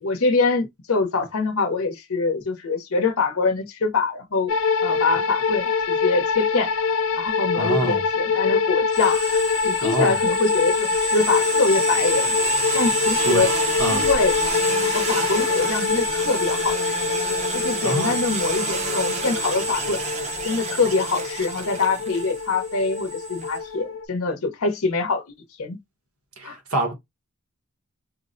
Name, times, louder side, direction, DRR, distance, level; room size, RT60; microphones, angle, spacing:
voice 1, 0.0-4.5 4.8-6.7 7.1-9.2 9.6-12.3 12.7-13.5 13.8-14.4 14.9-17.1 17.5-20.0 20.4-25.8 26.4-26.6, left 3 dB, 75° left, 0.8 m, -24 dB
sound 1, 4.5-24.1, left 5 dB, 60° left, 0.4 m, -25 dB
voice 2, 7.5-8.0 9.8-10.2 13.2-13.5 13.8-14.1 17.8-18.3 26.4-26.9, right 2 dB, 80° right, 1.2 m, -26 dB
sound 2, 8.9-23.6, right 2 dB, 30° right, 0.6 m, -29 dB
4.4 x 2.1 x 2.5 m
head